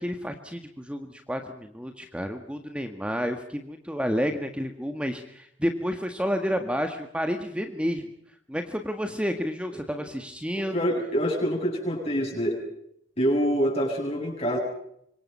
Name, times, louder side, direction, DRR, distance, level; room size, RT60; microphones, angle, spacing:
voice 1, 0.0-8.1 8.5-10.8, equal, 5° right, 6 dB, 1.7 m, -30 dB
voice 2, 10.5-12.6 13.2-14.6, equal, 30° left, -2 dB, 7.6 m, -26 dB
26.5 x 24.0 x 5.6 m, 0.72 s
head